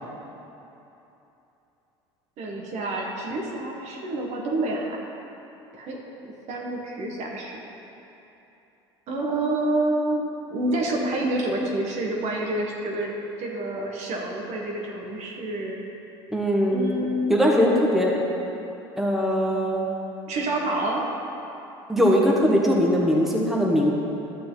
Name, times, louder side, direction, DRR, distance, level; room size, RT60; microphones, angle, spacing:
voice 1, 2.4-5.0 5.7-6.0 6.5-7.6 9.1-13.1 13.4-15.8 16.7-17.4 20.3-21.0, right 1 dB, 55° right, -1 dB, 1.5 m, -28 dB
voice 2, 16.3-16.8 17.3-18.1 19.0-19.8 21.9-23.9, equal, ahead, -3 dB, 1.4 m, -20 dB
11.5 x 6.7 x 3.9 m, 3.0 s
hypercardioid pair, 80°, 14 cm